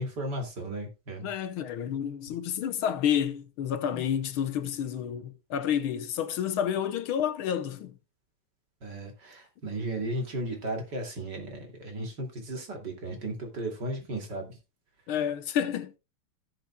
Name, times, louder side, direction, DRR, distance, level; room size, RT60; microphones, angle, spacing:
voice 1, 0.0-1.3 2.3-2.4 3.9-4.0 8.8-14.6, right 1 dB, 50° right, 3.1 m, -35 dB
voice 2, 1.2-8.0 15.1-15.9, left 9 dB, 75° left, 1.7 m, -30 dB
16.5 x 7.2 x 2.2 m
omnidirectional pair, 2.4 m